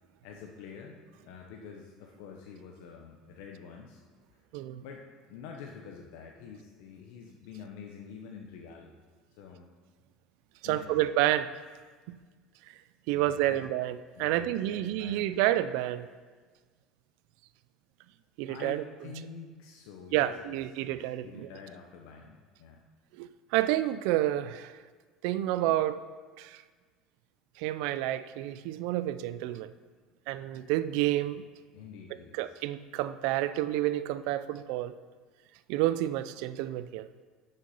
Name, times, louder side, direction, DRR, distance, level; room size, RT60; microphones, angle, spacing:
voice 1, 0.2-4.0 4.8-5.0 5.3-8.9 9.4-9.7 10.6-11.1 13.1-13.7 14.1-15.4 18.4-20.6 20.9-22.8 31.7-32.4, left 6 dB, 75° left, 1 dB, 0.8 m, -47 dB
voice 2, 10.6-11.5 12.1-12.2 13.1-16.1 18.4-18.8 20.1-21.5 23.2-24.8 25.2-26.1 26.4-26.6 27.6-29.7 30.3-31.4 32.3-34.9 35.7-37.1, right 14 dB, 70° right, 14 dB, 0.4 m, -29 dB
6.6 x 6.5 x 5.5 m, 1.4 s
cardioid pair, 150°, 0 cm